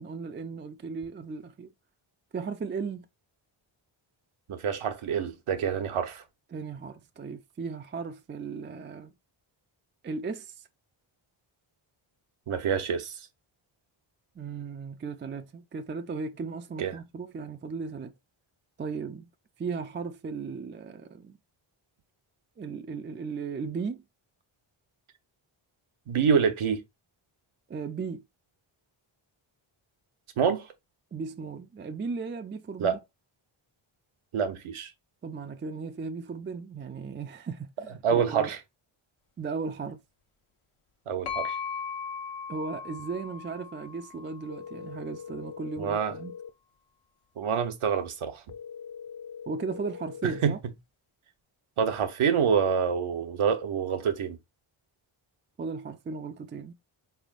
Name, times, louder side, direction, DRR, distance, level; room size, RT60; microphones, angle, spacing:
voice 1, 0.0-1.7 2.3-3.1 6.5-9.1 10.0-10.7 14.4-18.1 18.8-19.3 19.6-21.4 22.6-24.0 27.7-28.2 31.1-33.0 35.2-38.5 39.4-40.0 42.5-46.3 49.5-50.6 55.6-56.7, right 5 dB, 25° right, 0.3 m, -36 dB
voice 2, 4.5-6.2 12.5-13.3 16.8-17.0 26.1-26.8 30.4-30.7 32.8-33.0 34.3-34.9 38.0-38.6 41.1-41.6 45.8-46.1 47.4-48.4 50.2-50.5 51.8-54.4, right 7 dB, 75° right, 0.9 m, -27 dB
sound 1, 41.3-45.0, left 6 dB, 85° left, 1.2 m, -38 dB
sound 2, 44.5-46.5 48.5-50.5, left 7 dB, 50° left, 0.7 m, -42 dB
4.3 x 3.4 x 2.4 m
wide cardioid pair, 100°, 50 cm